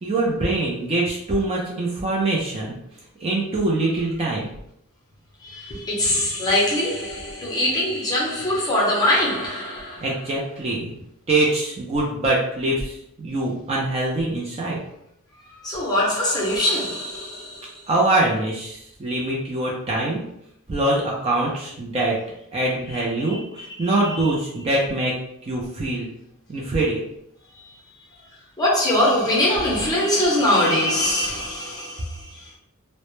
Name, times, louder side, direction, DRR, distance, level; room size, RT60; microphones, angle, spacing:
voice 1, 0.0-2.8 3.2-4.5 10.0-10.9 11.3-14.8 17.9-20.2 20.7-22.2 22.5-25.1 25.5-26.1 26.5-27.0, right 2 dB, 30° right, 0.4 m, -23 dB
voice 2, 5.4-10.0 14.6-14.7 15.5-17.7 23.3-23.4 23.8-24.2 28.6-32.1, left 1 dB, 15° left, 0.6 m, -22 dB
2.0 x 2.0 x 3.0 m
head